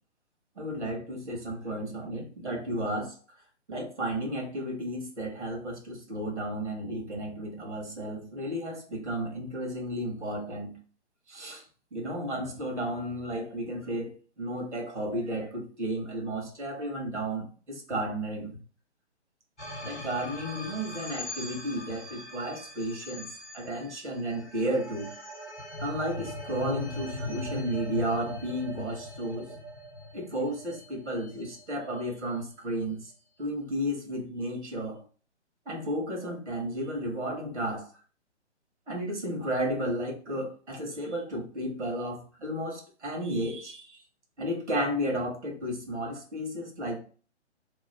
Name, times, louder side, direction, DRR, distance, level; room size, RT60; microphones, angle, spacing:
voice 1, 0.6-3.1 3.7-10.8 11.3-11.6 11.9-18.6 19.8-23.3 23.5-25.1 25.8-29.6 30.1-33.1 33.4-35.0 35.6-37.9 38.9-44.0 44.4-47.0, right 1 dB, 75° right, 1 dB, 1.4 m, -33 dB
sound 1, 19.6-32.0, left 1 dB, 10° left, 0.4 m, -40 dB
3.0 x 2.4 x 4.1 m, 0.39 s
figure-of-eight pair, 130°, 35 cm